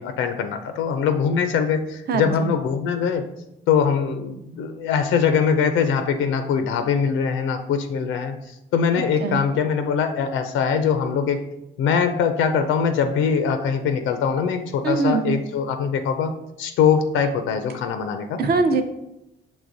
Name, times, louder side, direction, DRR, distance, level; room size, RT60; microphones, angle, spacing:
voice 1, 0.0-3.2 3.7-8.4 8.7-11.5 11.8-16.3 16.6-18.4, left 6 dB, 90° left, 7 dB, 0.4 m, -22 dB
voice 2, 2.1-2.5 9.0-9.4 14.8-15.4 18.4-18.8, right 4 dB, 55° right, 8 dB, 0.6 m, -22 dB
6.1 x 3.1 x 2.6 m, 0.87 s
cardioid pair, 90°, 20 cm